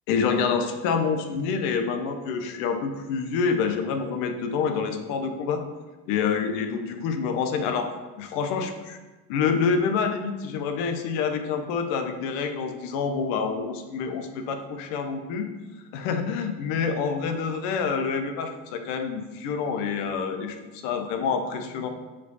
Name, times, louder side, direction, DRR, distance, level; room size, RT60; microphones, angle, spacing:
voice 1, 0.1-5.6 6.1-7.9 8.2-9.0 9.3-15.5 15.9-21.9, left 5 dB, 85° left, 6 dB, 0.8 m, -27 dB
4.9 x 4.8 x 4.0 m, 1.2 s
cardioid pair, 165°, 33 cm